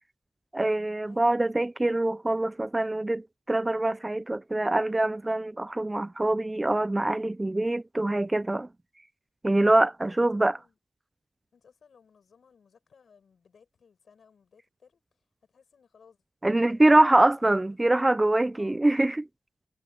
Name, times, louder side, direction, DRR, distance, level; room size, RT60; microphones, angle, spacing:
voice 1, 0.5-8.7 9.4-10.6 16.4-19.2, right 2 dB, 15° right, 0.3 m, -24 dB
voice 2, 10.0-10.8 11.5-16.2 16.6-18.0 18.5-18.9, left 6 dB, 65° left, 7.7 m, -60 dB
wide cardioid pair, 165°, 0 cm